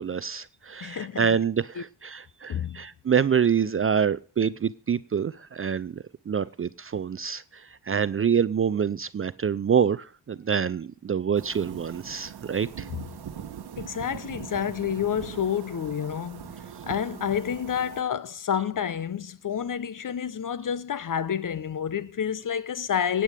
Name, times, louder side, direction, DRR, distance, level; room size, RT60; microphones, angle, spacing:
voice 1, 0.0-12.9, right 7 dB, 30° right, 0.5 m, -26 dB
voice 2, 0.8-1.3 1.8-1.9 2.5-2.8 13.8-16.5 16.9-23.2, left 8 dB, 40° left, 0.9 m, -29 dB
sound 1, 11.3-18.0, right 8 dB, 55° right, 1.2 m, -41 dB
17.5 x 8.6 x 5.1 m
supercardioid pair, 50°, 47 cm